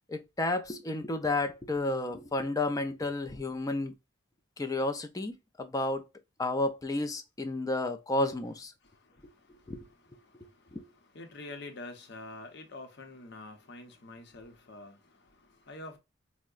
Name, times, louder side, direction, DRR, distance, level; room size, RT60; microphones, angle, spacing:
voice 1, 0.1-3.9 4.6-6.0 6.4-8.7 9.7-9.8 10.7-10.8, left 2 dB, 15° left, 0.4 m, -31 dB
voice 2, 8.8-16.0, left 2 dB, 55° left, 0.7 m, -47 dB
4.5 x 2.1 x 2.3 m
head